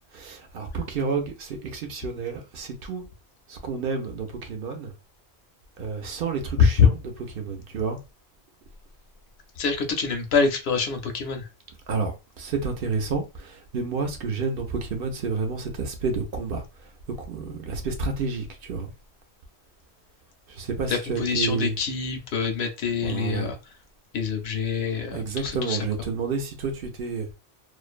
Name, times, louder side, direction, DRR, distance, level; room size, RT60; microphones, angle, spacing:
voice 1, 0.1-3.0 3.5-4.9 5.8-7.0 7.4-8.0 11.9-16.9 17.3-18.9 20.5-21.7 23.0-23.5 25.1-27.3, right 4 dB, 65° right, 0.7 m, -30 dB
voice 2, 9.6-11.5 20.9-23.6 24.1-25.8, left 6 dB, 75° left, 0.8 m, -24 dB
2.5 x 2.1 x 2.4 m
omnidirectional pair, 1.1 m